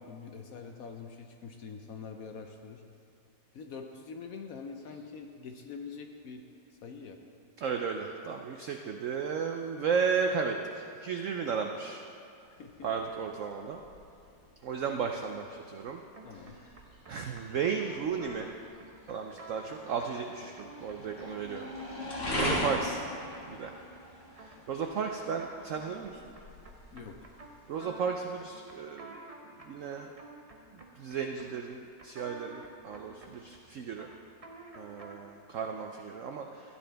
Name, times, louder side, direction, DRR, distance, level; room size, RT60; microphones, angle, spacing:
voice 1, 0.0-2.8 3.5-6.4 6.7-7.2 12.6-12.9 16.2-16.6 22.4-22.6 26.9-27.2, left 5 dB, 65° left, 4 dB, 0.9 m, -44 dB
voice 2, 7.6-12.0 12.8-13.8 14.6-16.0 16.3-16.4 17.1-18.5 19.1-21.7 22.3-23.0 23.4-23.7 24.4-26.2 27.7-29.2 29.6-30.1 30.7-34.1 34.7-36.8, right 6 dB, 75° right, 4 dB, 0.7 m, -34 dB
sound 1, 12.4-27.9, left 1 dB, 35° left, 2.1 m, -41 dB
sound 2, 16.1-35.3, right 2 dB, 30° right, 0.7 m, -51 dB
15.0 x 9.9 x 3.4 m, 2.7 s
omnidirectional pair, 2.0 m